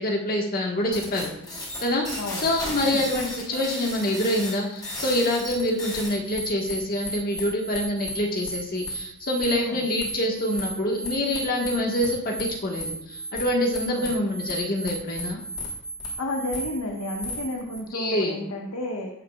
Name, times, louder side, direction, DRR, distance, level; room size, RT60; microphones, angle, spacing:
voice 1, 0.0-15.4 17.9-18.4, left 1 dB, 40° left, 0 dB, 1.6 m, -26 dB
sound 1, 0.9-17.8, right 1 dB, 20° left, 3.5 m, -35 dB
voice 2, 16.2-19.1, left 1 dB, 80° left, 0 dB, 1.4 m, -31 dB
17.5 x 7.7 x 2.4 m, 0.76 s
head